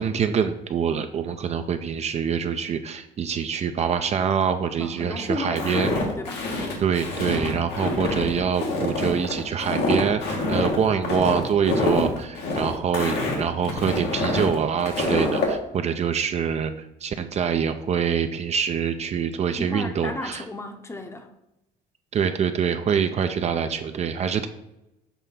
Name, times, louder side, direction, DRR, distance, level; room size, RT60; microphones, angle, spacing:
voice 1, 0.0-5.9 6.8-20.4 22.1-24.5, right 7 dB, 40° right, 8 dB, 0.4 m, -25 dB
voice 2, 4.8-6.5 19.6-21.3, left 2 dB, 15° left, 6 dB, 0.7 m, -33 dB
Walk footsteps, 5.6-15.5, left 2 dB, 85° left, 1.5 m, -26 dB
6.8 x 2.7 x 5.6 m, 0.91 s
cardioid pair, 110°, 17 cm